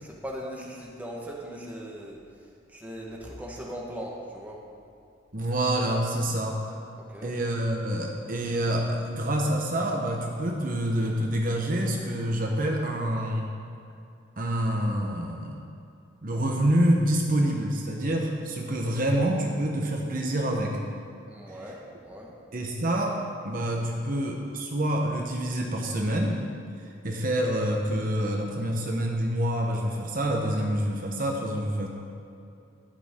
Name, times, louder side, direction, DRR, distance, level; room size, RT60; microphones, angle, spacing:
voice 1, 0.0-4.6 7.0-7.3 21.3-22.3, equal, 10° right, -3 dB, 1.3 m, -39 dB
voice 2, 5.3-6.8 7.2-13.6 14.4-15.6 16.2-20.8 21.5-21.6 22.5-23.1 23.4-26.4 26.8-31.9, right 1 dB, 45° right, 0 dB, 1.0 m, -27 dB
12.5 x 10.0 x 3.7 m, 2.6 s
head